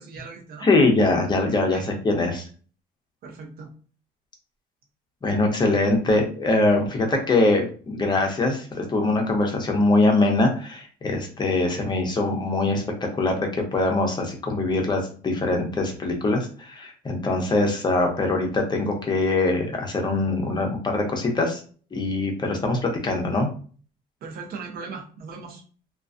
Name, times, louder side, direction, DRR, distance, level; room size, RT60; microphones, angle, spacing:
voice 1, 0.0-0.7 1.7-1.9 3.2-3.7 24.2-25.6, right 4 dB, 60° right, 2 dB, 0.7 m, -38 dB
voice 2, 0.6-2.5 5.2-12.8 13.2-21.6 21.9-23.5, left 2 dB, 25° left, 2 dB, 0.7 m, -23 dB
2.4 x 2.2 x 2.5 m, 0.41 s
cardioid pair, 110°, 17 cm